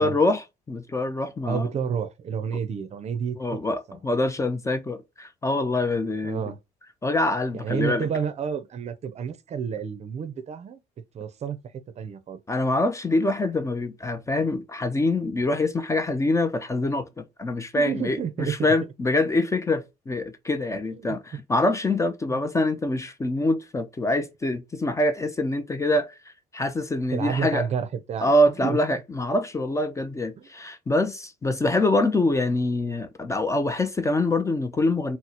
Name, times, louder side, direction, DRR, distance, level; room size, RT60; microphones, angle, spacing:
voice 1, 0.0-1.7 3.4-6.4 7.0-8.1 12.5-26.1 26.5-27.7 28.2-35.2, left 2 dB, 20° left, 0.4 m, -25 dB
voice 2, 1.5-3.6 3.9-4.0 6.2-6.6 7.5-10.8 11.1-11.6 12.0-12.4 17.8-18.7 21.0-21.2 22.3-22.4 27.1-28.3 28.6-29.0 30.4-30.5, right 7 dB, 40° right, 0.5 m, -30 dB
3.9 x 2.0 x 2.8 m
cardioid pair, 110°, 17 cm